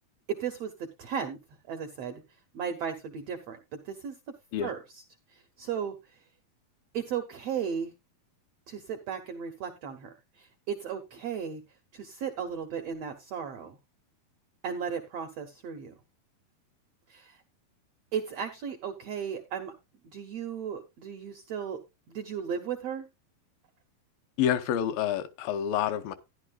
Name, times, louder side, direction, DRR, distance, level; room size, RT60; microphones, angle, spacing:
voice 1, 0.3-1.4 1.7-2.2 2.5-4.2 4.6-4.8 5.3-6.2 6.9-7.9 8.7-11.6 11.9-13.8 14.6-15.9 17.1-17.4 18.1-19.7 20.1-21.8 22.1-23.1, right 7 dB, 90° right, 1.4 m, -35 dB
voice 2, 24.4-26.1, left 10 dB, 80° left, 2.5 m, -28 dB
13.0 x 10.5 x 2.3 m
omnidirectional pair, 4.2 m